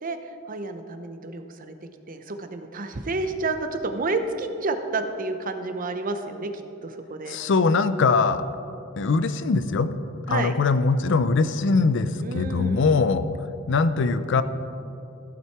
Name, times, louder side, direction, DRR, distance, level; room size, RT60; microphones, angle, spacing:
voice 1, 0.0-1.7 2.1-6.5 6.8-7.4 10.3-10.5 12.2-12.8, right 3 dB, 40° right, 8 dB, 0.7 m, -30 dB
voice 2, 7.3-8.4 9.0-9.9 10.3-13.2 13.7-14.4, left 4 dB, 60° left, 12 dB, 0.5 m, -22 dB
15.0 x 7.5 x 4.6 m, 2.8 s
head